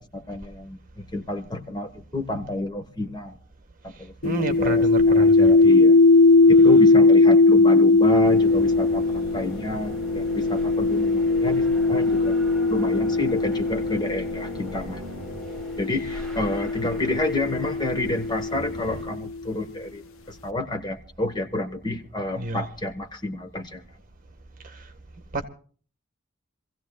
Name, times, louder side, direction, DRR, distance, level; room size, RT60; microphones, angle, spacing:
voice 1, 0.0-3.4 3.8-6.0 6.5-12.4 12.7-15.0 15.8-20.0 20.3-23.8, left 2 dB, 20° left, 1.4 m, -30 dB
sound 1, 4.2-14.6 15.5-19.2, left 3 dB, 90° left, 0.7 m, -19 dB
voice 2, 4.2-5.6 22.3-22.7 24.6-24.8 25.3-25.5, right 2 dB, 45° right, 1.7 m, -29 dB
sound 2, 8.2-19.0, left 1 dB, 5° left, 6.0 m, -38 dB
26.5 x 16.0 x 2.4 m
head